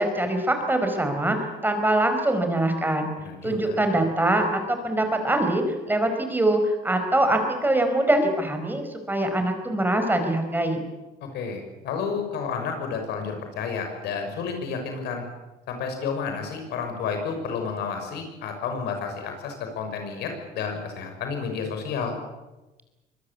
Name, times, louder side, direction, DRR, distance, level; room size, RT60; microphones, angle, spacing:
voice 1, 0.0-1.4 1.6-3.1 3.4-10.8, right 1 dB, 10° right, 6 dB, 4.7 m, -23 dB
voice 2, 3.2-3.8 11.3-15.3 15.7-22.2, left 5 dB, 80° left, 5 dB, 6.0 m, -31 dB
24.0 x 20.0 x 8.5 m, 1.1 s
cardioid pair, 110°, 17 cm